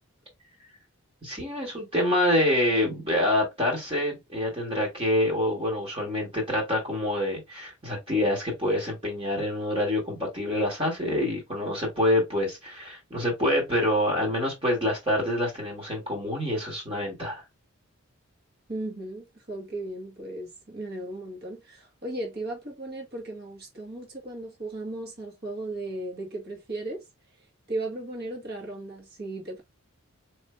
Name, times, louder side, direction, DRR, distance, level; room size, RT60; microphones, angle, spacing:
voice 1, 1.2-17.4, left 1 dB, 25° right, 1.6 m, -26 dB
voice 2, 18.7-27.0 27.7-29.6, right 2 dB, 45° right, 1.8 m, -36 dB
4.4 x 3.2 x 3.2 m
head